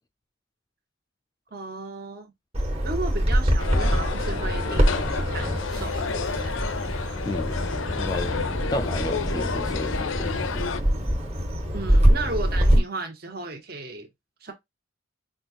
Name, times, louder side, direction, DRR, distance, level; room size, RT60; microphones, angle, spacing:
voice 1, 1.5-2.3 2.8-6.6 11.7-14.1 14.4-14.5, right 3 dB, 50° right, 1.4 m, -35 dB
Bird vocalization bird call bird song, 2.5-12.8, equal, 30° right, 1.5 m, -24 dB
sound 1, 3.6-10.8, left 5 dB, 75° left, 0.5 m, -31 dB
voice 2, 7.2-7.6 8.0-8.4 8.7-10.3, left 1 dB, 20° left, 0.3 m, -32 dB
5.6 x 2.5 x 2.8 m
head